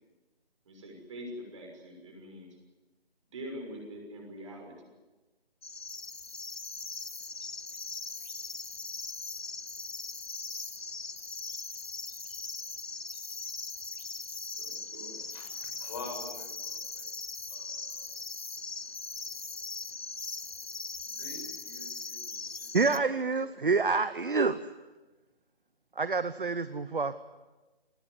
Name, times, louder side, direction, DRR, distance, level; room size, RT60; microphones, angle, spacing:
voice 1, 0.7-2.5 3.3-4.7 14.6-15.2, equal, 30° right, 2 dB, 6.3 m, -44 dB
sound 1, 5.6-23.0, left 3 dB, 75° left, 1.0 m, -40 dB
voice 2, 14.9-17.1 17.5-19.0 19.8-19.9 21.0-23.5, left 3 dB, 25° left, 2 dB, 6.6 m, -48 dB
voice 3, 22.7-24.6 26.0-27.1, right 4 dB, 55° right, 13 dB, 1.0 m, -27 dB
24.0 x 19.0 x 9.6 m, 1.2 s
figure-of-eight pair, 150°, 31 cm